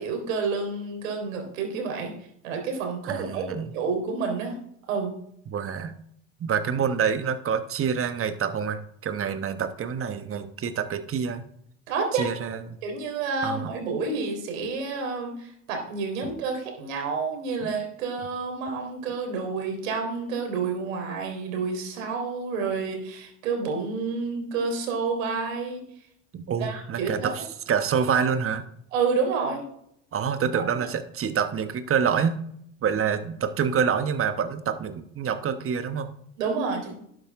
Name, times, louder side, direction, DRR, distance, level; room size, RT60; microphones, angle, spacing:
voice 1, 0.0-2.1 2.4-3.4 3.7-4.5 4.9-5.1 11.9-12.3 12.8-25.8 26.6-27.3 28.9-29.6 30.5-30.6 36.4-36.9, right 4 dB, 80° right, 2 dB, 3.6 m, -29 dB
voice 2, 3.0-3.7 5.5-5.9 6.4-11.4 12.1-12.6 13.4-13.7 16.2-16.3 17.6-17.7 26.3-28.6 30.1-32.4 32.8-36.1, right 7 dB, 35° right, 9 dB, 1.2 m, -27 dB
11.5 x 9.1 x 3.6 m, 0.69 s
hypercardioid pair, 75°, 39 cm